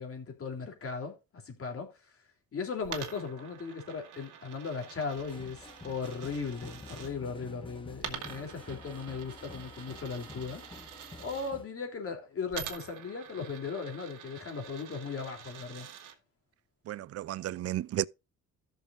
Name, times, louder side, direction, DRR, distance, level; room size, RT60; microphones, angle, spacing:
voice 1, 0.0-2.2 2.5-10.6 11.2-15.9, left 5 dB, 45° left, 3.2 m, -37 dB
Coin (dropping), 2.8-7.1 8.0-11.5 12.5-16.2, right 9 dB, 80° right, 1.6 m, -46 dB
sound 1, 5.1-11.7, left 3 dB, 15° left, 1.3 m, -49 dB
voice 2, 16.9-18.1, right 14 dB, 55° right, 0.4 m, -33 dB
14.0 x 6.4 x 2.5 m
cardioid pair, 90°, 30 cm